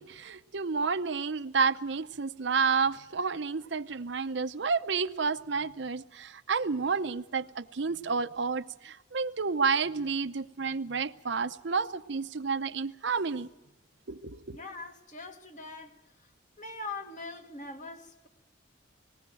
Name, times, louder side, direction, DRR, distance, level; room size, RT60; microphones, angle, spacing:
voice 1, 0.0-13.5 14.1-14.6, right 5 dB, 65° right, 0.7 m, -30 dB
voice 2, 14.4-16.3 16.6-18.3, left 3 dB, 40° left, 1.8 m, -42 dB
19.5 x 19.0 x 7.7 m
head